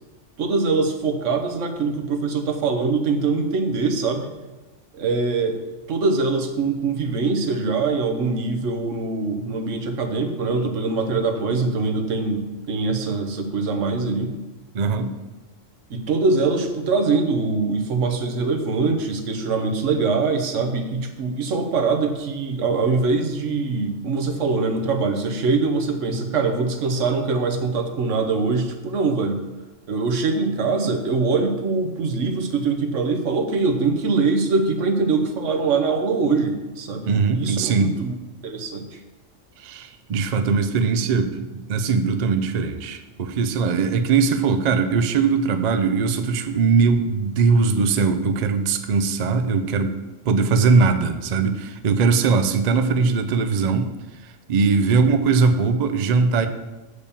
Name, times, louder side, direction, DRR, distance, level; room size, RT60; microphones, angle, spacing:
voice 1, 0.4-4.3 4.9-5.6 5.9-14.3 15.9-29.4 29.9-37.1 37.3-38.2 38.4-38.8, right 4 dB, 70° right, 4 dB, 1.3 m, -23 dB
voice 2, 14.7-15.1 37.1-38.0 39.6-49.9 50.2-53.9 54.2-56.5, right 5 dB, 55° right, 8 dB, 0.5 m, -20 dB
7.0 x 5.0 x 6.8 m, 1.1 s
omnidirectional pair, 1.3 m